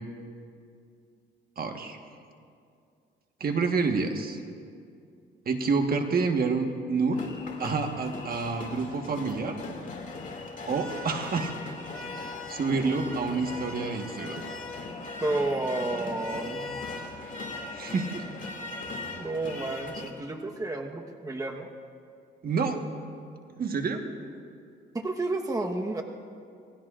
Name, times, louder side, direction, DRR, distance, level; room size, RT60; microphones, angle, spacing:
voice 1, 1.6-2.0 3.4-4.4 5.4-7.2 7.6-9.6 10.7-11.5 12.2-14.5 17.7-18.2 22.4-22.8 23.6-24.0, right 4 dB, 50° right, 4 dB, 1.4 m, -28 dB
sound 1, 7.1-20.1, left 2 dB, 40° left, 2.4 m, -39 dB
voice 2, 15.2-16.8 19.1-21.7 24.9-26.0, right 2 dB, 15° right, 2 dB, 1.2 m, -31 dB
27.5 x 19.0 x 2.5 m, 2.3 s
cardioid pair, 90°, 20 cm